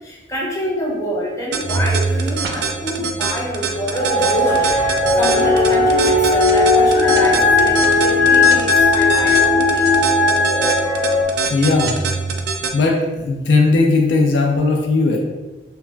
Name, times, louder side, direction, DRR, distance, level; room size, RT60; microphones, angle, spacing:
voice 1, 0.0-9.9, equal, 15° left, -5 dB, 0.6 m, -26 dB
sound 1, 1.5-12.7, right 6 dB, 65° right, 0.3 m, -24 dB
Organ, 1.6-12.6, right 3 dB, 85° right, 0.8 m, -30 dB
sound 2, 3.9-11.2, left 3 dB, 50° left, 0.9 m, -16 dB
voice 2, 11.5-12.0 12.7-15.2, left 3 dB, 70° left, 1 dB, 0.4 m, -17 dB
3.1 x 2.3 x 2.2 m, 1.2 s
head